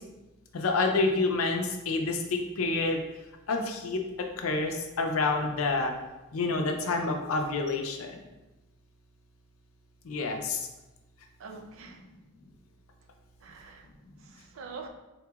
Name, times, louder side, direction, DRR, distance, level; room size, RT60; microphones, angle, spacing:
voice 1, 0.5-3.0 3.5-5.9 6.3-8.2 10.1-10.6, left 3 dB, 85° left, 3 dB, 0.5 m, -28 dB
voice 2, 11.4-12.0 13.4-13.9 14.2-14.9, right 4 dB, 70° right, 4 dB, 0.4 m, -44 dB
4.1 x 2.8 x 2.3 m, 1.0 s
head